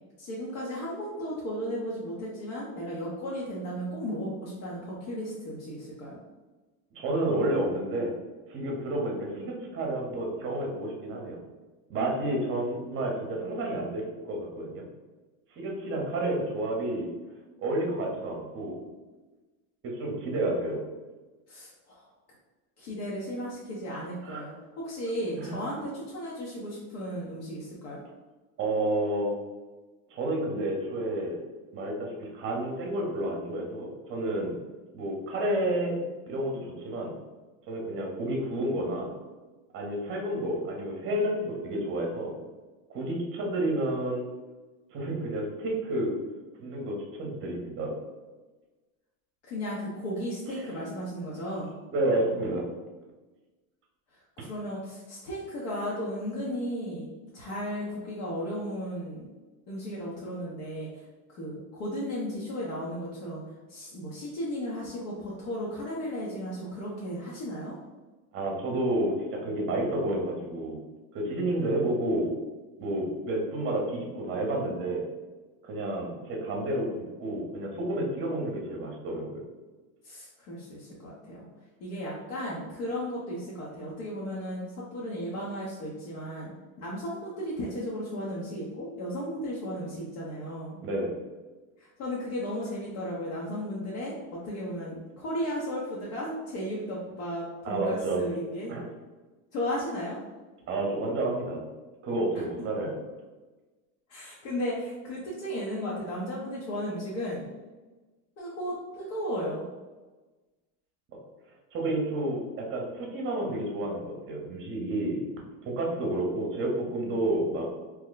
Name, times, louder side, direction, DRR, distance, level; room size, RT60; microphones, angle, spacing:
voice 1, 0.2-6.2 21.5-22.1 22.8-28.0 49.4-51.7 54.4-57.1 57.3-59.3 59.7-61.0 61.3-63.4 63.7-67.8 80.0-81.4 81.8-86.5 86.8-90.8 91.8-98.7 99.5-100.2 102.3-102.4 104.1-107.5 108.4-109.6, equal, 70° left, -5 dB, 1.0 m, -35 dB
voice 2, 6.9-8.1 8.5-11.4 11.9-14.8 15.5-17.1 17.6-18.8 19.8-20.8 24.2-24.5 25.4-25.6 28.6-29.4 30.1-31.4 31.7-34.5 34.9-36.0 36.3-37.1 37.7-39.1 39.7-42.3 42.9-44.3 44.9-46.1 46.6-47.9 50.5-50.7 51.9-52.7 68.3-70.8 71.1-72.3 72.8-75.0 75.6-76.9 77.2-79.4 90.8-91.1 97.6-98.3 98.7-98.8 100.7-101.6 102.0-103.0 111.7-115.2 115.6-117.7, right 1 dB, 30° right, 0 dB, 0.7 m, -30 dB
2.9 x 2.1 x 3.9 m, 1.2 s
supercardioid pair, 145°, 44 cm